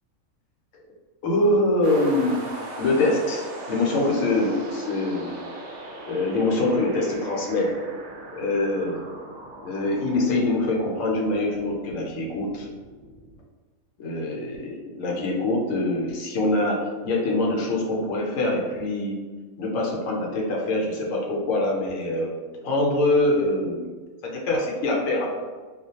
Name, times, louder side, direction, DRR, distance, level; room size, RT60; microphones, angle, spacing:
voice 1, 1.2-2.4 2.8-5.4 6.1-7.7 8.3-9.0 9.6-12.7 14.0-19.2 19.6-22.3 22.6-23.9 24.2-25.3, left 2 dB, 75° left, 0 dB, 1.0 m, -24 dB
sound 1, 1.8-13.4, right 2 dB, 65° right, 0.6 m, -40 dB
2.3 x 2.1 x 2.7 m, 1.4 s
omnidirectional pair, 1.4 m